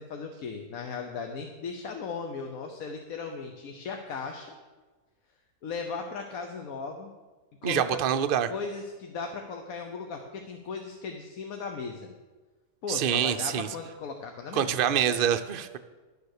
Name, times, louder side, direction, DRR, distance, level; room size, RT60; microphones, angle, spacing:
voice 1, 0.0-4.5 5.6-7.1 7.6-8.0 8.5-12.1 12.8-15.2, left 5 dB, 70° left, 4 dB, 1.3 m, -37 dB
voice 2, 7.6-8.5 12.9-13.7 14.5-15.8, right 9 dB, 55° right, 9 dB, 0.6 m, -26 dB
11.5 x 6.9 x 6.5 m, 1.3 s
omnidirectional pair, 1.6 m